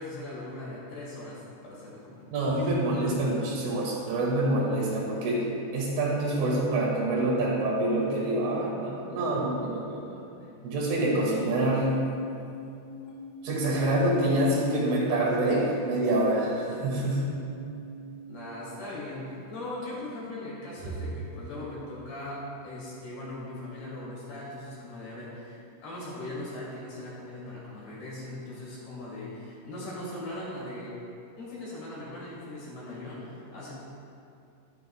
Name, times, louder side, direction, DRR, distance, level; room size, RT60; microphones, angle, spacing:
voice 1, 0.0-2.3 18.3-30.9 31.4-33.7, left 1 dB, 55° left, -7 dB, 4.1 m, -39 dB
voice 2, 2.3-5.4 5.7-10.1 10.6-11.9 13.4-17.3, right 1 dB, 80° right, -5 dB, 4.7 m, -26 dB
sound 1, 11.4-18.8 19.4-19.9, left 4 dB, 80° left, 3.2 m, -39 dB
13.5 x 12.0 x 2.4 m, 2.6 s
omnidirectional pair, 5.7 m